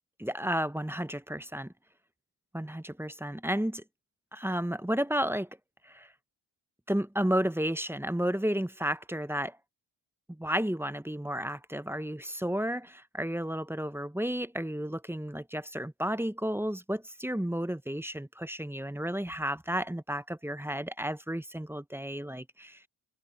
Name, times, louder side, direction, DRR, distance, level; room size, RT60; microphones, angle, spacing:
voice 1, 0.2-1.7 2.5-3.8 4.3-5.5 5.9-6.1 6.9-9.6 10.3-22.8, equal, 5° right, 0.6 m, -32 dB
wide cardioid pair, 50°, 49 cm